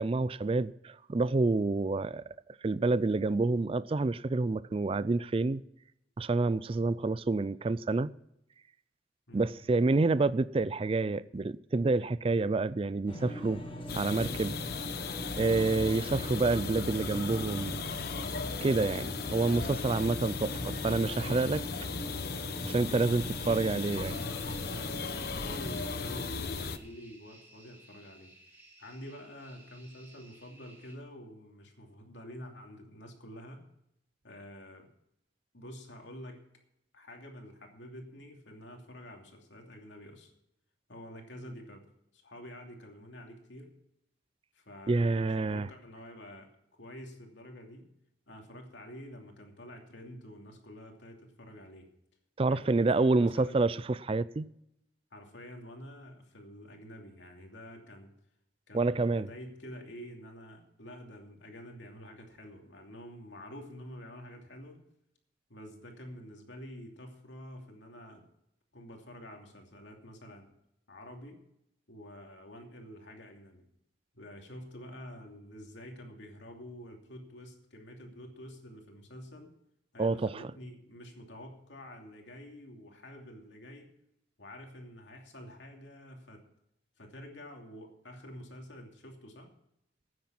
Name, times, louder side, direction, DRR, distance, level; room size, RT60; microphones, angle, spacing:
voice 1, 0.0-2.2 2.6-5.6 6.2-8.1 9.3-13.6 13.9-14.5 15.4-17.8 18.6-21.6 22.6-24.2 44.9-45.7 52.4-54.5 58.7-59.3 80.0-80.4, right 3 dB, 30° right, 0.4 m, -28 dB
sound 1, 13.1-26.3, equal, 30° left, 1.5 m, -42 dB
sound 2, 13.9-26.8, left 4 dB, 55° left, 1.0 m, -37 dB
sound 3, 22.9-31.0, right 1 dB, 10° right, 4.0 m, -59 dB
voice 2, 24.2-28.3 28.8-33.6 34.2-34.9 35.5-36.4 36.9-40.3 40.9-41.9 42.1-43.7 44.5-47.9 48.3-51.9 52.5-53.6 55.1-58.1 58.7-64.8 65.5-68.3 68.7-70.6 70.9-71.4 71.9-73.7 74.1-79.5 79.9-83.9 84.4-86.4 87.0-89.5, equal, 70° left, 2.8 m, -48 dB
13.5 x 9.5 x 5.9 m
head